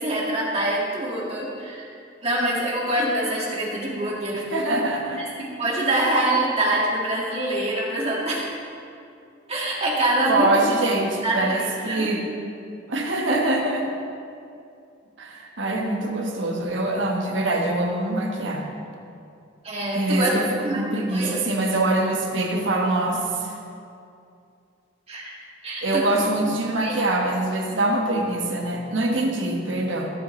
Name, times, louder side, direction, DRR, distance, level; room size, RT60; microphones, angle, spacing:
voice 1, 0.0-1.9 2.2-4.4 5.2-8.5 9.5-10.5 11.2-12.1 19.6-20.3 20.6-20.8 21.1-21.4 25.1-25.3 25.6-26.1 26.3-26.9, right 1 dB, 35° right, -5 dB, 2.1 m, -25 dB
voice 2, 4.3-5.2 10.3-12.2 12.9-13.9 15.2-18.7 19.9-23.6 25.8-30.1, right 2 dB, 80° right, 0 dB, 1.4 m, -24 dB
15.0 x 7.6 x 3.3 m, 2.5 s
head